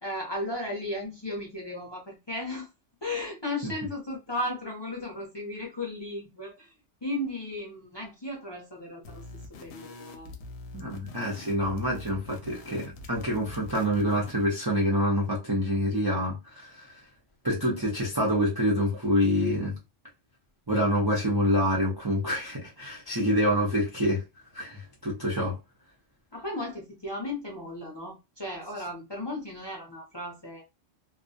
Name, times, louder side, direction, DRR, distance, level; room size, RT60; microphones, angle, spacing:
voice 1, 0.0-2.7 3.0-6.7 7.0-10.3 26.3-30.6, left 1 dB, 30° left, 0.5 m, -35 dB
sound 1, 9.0-14.5, left 3 dB, 65° left, 0.8 m, -44 dB
voice 2, 10.7-16.9 17.4-19.8 20.7-24.2 24.5-25.6, equal, 30° right, 0.4 m, -26 dB
2.4 x 2.0 x 2.6 m
omnidirectional pair, 1.3 m